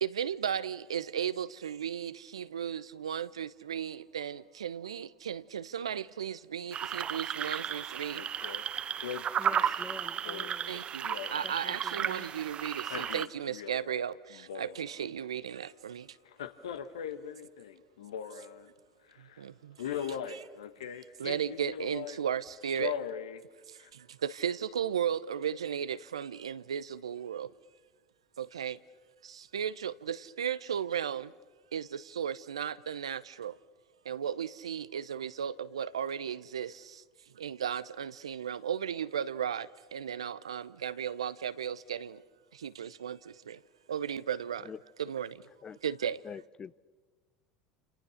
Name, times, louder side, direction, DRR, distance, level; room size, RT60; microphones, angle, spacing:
voice 1, 0.0-8.3 10.7-16.2 18.4-18.5 19.2-20.5 21.2-23.0 23.7-27.5 28.4-28.8 29.2-31.3 31.7-33.6 34.0-37.0 37.3-42.2 42.5-43.6 43.9-44.7 45.0-45.4 45.8-46.2, right 8 dB, 80° right, 0.7 m, -35 dB
sound 1, 6.7-13.3, right 9 dB, 40° right, 1.0 m, -34 dB
Male speech man speaking, 7.6-7.8 8.1-8.6 9.0-12.2 12.7-14.0 14.3-15.1 16.3-18.7 19.1-19.3 19.8-22.2 22.6-23.4 23.9-24.0, left 9 dB, 75° left, 1.4 m, -40 dB
voice 2, 9.4-10.8 11.4-12.5, left 2 dB, 10° left, 1.6 m, -48 dB
voice 3, 46.2-46.8, left 6 dB, 30° left, 0.7 m, -44 dB
29.5 x 28.5 x 6.5 m
hypercardioid pair, 75°, 3 cm